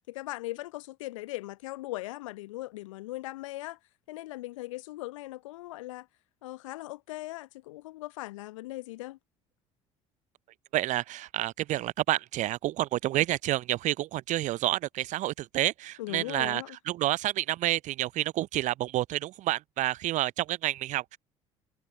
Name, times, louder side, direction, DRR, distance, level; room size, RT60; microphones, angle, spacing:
voice 1, 0.1-3.8 4.1-6.1 6.4-9.2 16.0-16.8, left 18 dB, 70° left, 1.0 m, -39 dB
voice 2, 10.7-21.2, right 15 dB, 45° right, 0.6 m, -29 dB
figure-of-eight pair, 55°, 17 cm